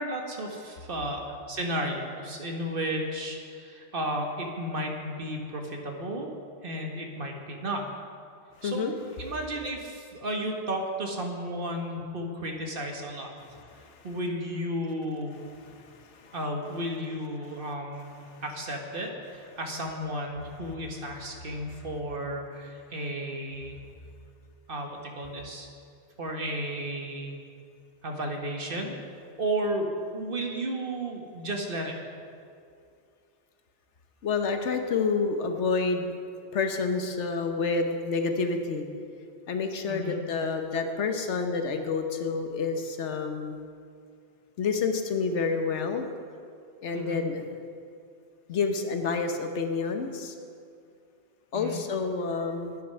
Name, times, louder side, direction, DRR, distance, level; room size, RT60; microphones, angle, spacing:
voice 1, 0.0-6.3 6.6-7.9 8.6-13.3 14.0-15.3 16.3-18.1 18.4-23.8 24.7-25.7 26.2-27.4 28.0-28.9 29.4-32.0 39.9-40.2 46.9-47.2 51.5-51.8, right 1 dB, 50° right, 2 dB, 1.4 m, -33 dB
voice 2, 8.6-8.9 13.7-14.0 15.7-16.3 18.3-18.4 34.2-36.1 36.5-38.9 39.5-43.6 44.6-46.1 46.8-47.4 48.5-50.3 51.5-52.8, left 4 dB, 85° left, 6 dB, 1.3 m, -29 dB
11.0 x 9.2 x 5.6 m, 2.4 s
omnidirectional pair, 1.2 m